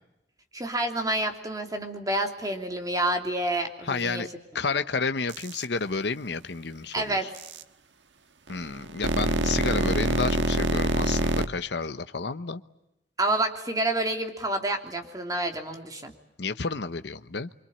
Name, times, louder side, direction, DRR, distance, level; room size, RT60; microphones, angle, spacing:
voice 1, 0.5-4.2 6.9-7.3 13.2-16.1, right 1 dB, 20° right, 4 dB, 2.9 m, -28 dB
voice 2, 3.8-4.3 4.5-7.3 8.5-12.6 16.4-17.5, left 4 dB, 70° left, 10 dB, 0.9 m, -30 dB
sound 1, 5.3-5.7 7.3-7.6 8.5-11.5, right 1 dB, 90° right, 1.5 m, -26 dB
25.5 x 25.0 x 8.6 m, 0.88 s
head